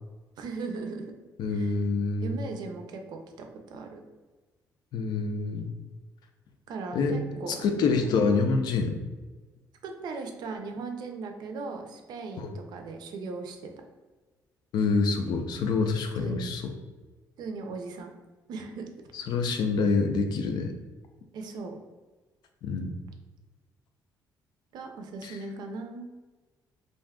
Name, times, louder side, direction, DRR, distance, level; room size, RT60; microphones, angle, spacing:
voice 1, 0.4-1.1 1.5-1.8 2.2-4.0 6.7-8.1 9.8-13.7 16.2-16.6 17.4-18.1 18.5-19.1 21.3-21.8 24.7-26.1, right 4 dB, 65° right, 4 dB, 0.5 m, -38 dB
voice 2, 1.4-2.4 4.9-5.7 6.9-9.0 12.4-12.5 14.7-16.7 19.1-20.7 22.6-22.9 25.2-25.4, left 4 dB, 65° left, 5 dB, 0.4 m, -27 dB
2.6 x 2.3 x 3.4 m, 1.3 s
cardioid pair, 145°, 8 cm